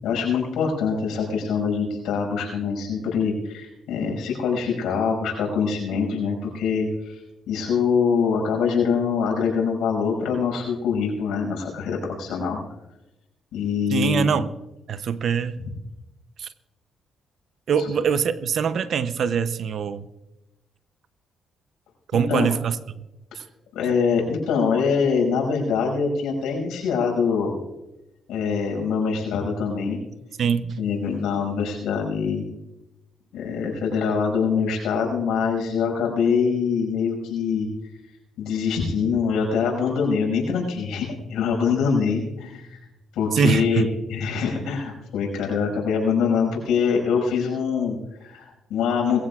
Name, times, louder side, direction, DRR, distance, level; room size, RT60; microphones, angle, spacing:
voice 1, 0.0-12.6 13.5-14.3 22.1-22.5 23.7-27.6 28.3-30.0 30.8-32.4 33.3-37.7 38.4-42.8 43.1-49.2, left 6 dB, 85° left, 0 dB, 5.8 m, -24 dB
voice 2, 13.9-14.5 14.9-15.7 16.4-16.5 17.7-20.1 22.1-23.1 23.3-23.4 30.4-30.8 43.3-43.9, right 6 dB, 60° right, 13 dB, 0.7 m, -23 dB
22.0 x 15.5 x 2.4 m, 0.96 s
cardioid pair, 90°, 0 cm